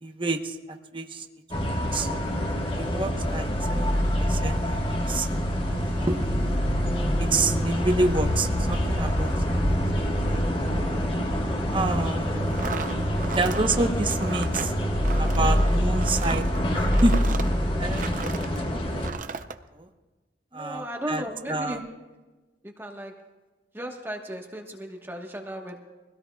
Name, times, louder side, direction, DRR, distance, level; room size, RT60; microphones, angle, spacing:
voice 1, 0.0-1.2 1.7-2.1 2.6-3.9 4.2-5.3 5.9-6.4 7.2-10.4 10.7-10.8 11.7-12.6 13.3-14.7 15.2-17.2 17.8-18.2 18.5-19.3 19.8-19.9 20.5-21.8, right 2 dB, 30° right, 5 dB, 1.0 m, -29 dB
sound 1, 1.5-19.1, equal, 30° left, 1.4 m, -25 dB
sound 2, 12.4-18.6 19.0-19.6, right 5 dB, 50° right, 0.6 m, -36 dB
voice 2, 20.5-21.8 22.6-23.1 23.7-25.8, right 1 dB, 15° right, 1 dB, 1.3 m, -36 dB
23.5 x 17.0 x 2.3 m, 1.2 s
head